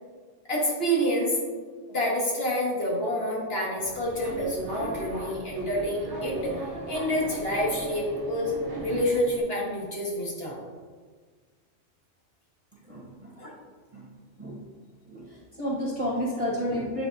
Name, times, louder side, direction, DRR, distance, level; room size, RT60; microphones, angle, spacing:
voice 1, 0.5-1.4 1.9-6.5 6.9-8.5 8.8-10.6 13.4-13.5, equal, 55° left, -4 dB, 1.6 m, -28 dB
Subway metro underground, 3.8-9.4, right 1 dB, 65° right, 1.2 m, -37 dB
voice 2, 12.9-13.3 13.9-14.1 14.4-14.6 15.1-17.1, equal, 30° right, -5 dB, 1.0 m, -31 dB
7.9 x 5.0 x 2.6 m, 1.5 s
omnidirectional pair, 1.3 m